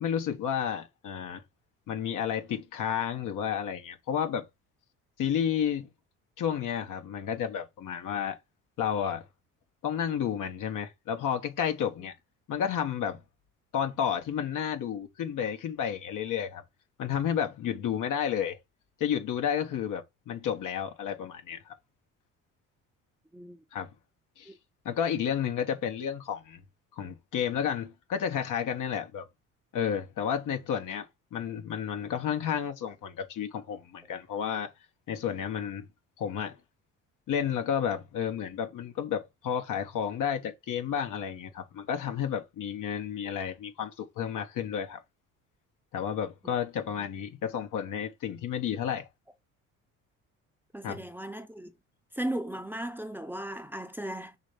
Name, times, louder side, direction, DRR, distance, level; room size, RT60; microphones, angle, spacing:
voice 1, 0.0-1.4 1.9-4.5 5.2-5.9 6.4-8.4 8.8-9.2 9.8-12.1 12.5-13.2 13.7-16.6 17.0-18.6 19.0-21.7 23.7-23.9 24.4-24.5 24.8-26.6 27.0-29.3 29.7-34.7 35.1-35.8 36.2-36.6 37.3-45.0 45.9-49.1 50.8-51.0, left 8 dB, 65° left, 1.4 m, -31 dB
voice 2, 50.7-51.7 52.1-54.4, right 1 dB, 5° right, 0.8 m, -36 dB
6.3 x 3.2 x 5.1 m
supercardioid pair, 85°, 34 cm